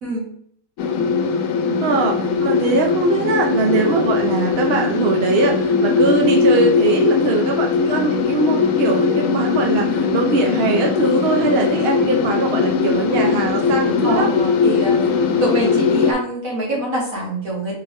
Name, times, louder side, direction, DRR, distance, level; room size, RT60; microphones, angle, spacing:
sound 1, 0.8-16.1, left 5 dB, 75° left, 1.0 m, -19 dB
voice 1, 1.8-14.3, right 3 dB, 55° right, 2 dB, 0.8 m, -21 dB
voice 2, 14.0-15.1 15.4-17.7, right 1 dB, 75° right, -5 dB, 2.2 m, -24 dB
4.4 x 3.3 x 3.1 m, 0.66 s
omnidirectional pair, 1.4 m